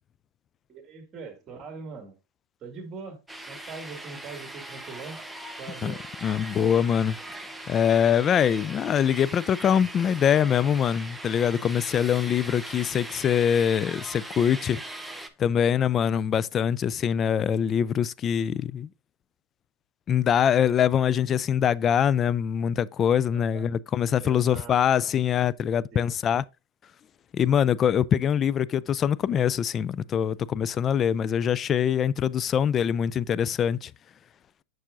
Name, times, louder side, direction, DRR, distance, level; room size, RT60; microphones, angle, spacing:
voice 1, 0.7-2.2 2.6-3.2 3.5-5.2 5.5-6.0 23.3-23.7 24.2-25.1 25.9-26.1, right 4 dB, 30° right, 2.1 m, -42 dB
sound 1, 3.3-15.3, right 1 dB, 5° right, 0.7 m, -40 dB
voice 2, 6.2-7.2 7.7-14.8 15.4-18.9 20.1-26.4 27.3-33.9, left 8 dB, 30° left, 0.3 m, -23 dB
7.2 x 6.1 x 2.5 m
hypercardioid pair, 115°, 0 cm